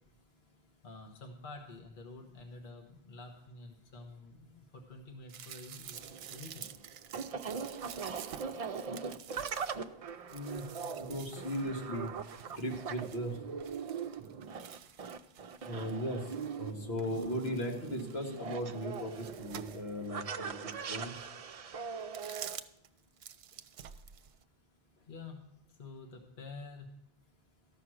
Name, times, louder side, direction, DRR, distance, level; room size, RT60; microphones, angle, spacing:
voice 1, 0.8-6.8 23.5-23.6 25.0-25.4 25.7-26.9, left 3 dB, 50° left, 2 dB, 1.2 m, -49 dB
sound 1, 5.3-16.7 17.0-20.2 20.7-20.8 22.0-22.9 23.2-24.4, right 9 dB, 75° right, 0.8 m, -50 dB
sound 2, 5.9-22.6, right 6 dB, 50° right, 0.4 m, -41 dB
voice 2, 10.3-10.7 11.0-12.1 12.6-13.4 15.6-16.3 16.6-21.2, equal, 70° left, 1 dB, 1.8 m, -37 dB
13.5 x 5.9 x 6.3 m, 0.80 s
omnidirectional pair, 1.1 m